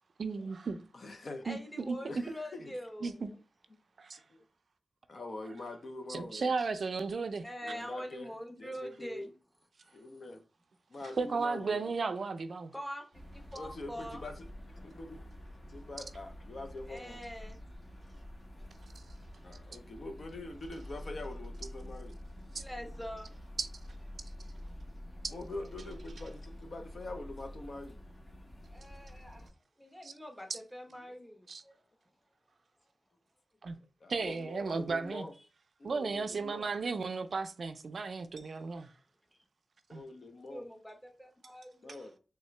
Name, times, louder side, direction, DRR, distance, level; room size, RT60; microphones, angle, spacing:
voice 1, 0.2-0.8 1.5-2.2 3.0-3.3 4.0-4.2 6.1-7.5 11.2-12.7 22.5-22.6 23.6-23.7 30.0-30.1 30.5-30.6 31.5-31.6 33.6-33.8 34.1-35.3 35.8-38.9 39.9-40.0, right 4 dB, 60° right, 0.4 m, -34 dB
voice 2, 0.9-1.5 2.1-2.7 3.7-3.8 4.3-4.4 5.1-6.7 7.6-8.3 8.6-9.3 9.9-10.4 10.9-11.9 13.5-14.5 14.8-15.2 15.7-17.2 19.4-22.2 25.3-28.0 31.0-31.2 33.6-33.7 34.0-35.3 35.8-36.7 39.9-40.7 41.8-42.1, left 2 dB, 55° left, 0.7 m, -44 dB
voice 3, 1.4-3.4 7.4-9.3 9.9-10.0 12.7-14.2 16.9-17.6 22.5-23.3 28.7-29.4 29.8-31.8 40.4-42.2, equal, 5° left, 0.9 m, -44 dB
sound 1, 13.1-29.5, left 1 dB, 35° left, 1.4 m, -48 dB
3.6 x 3.4 x 3.2 m
wide cardioid pair, 135°, 0 cm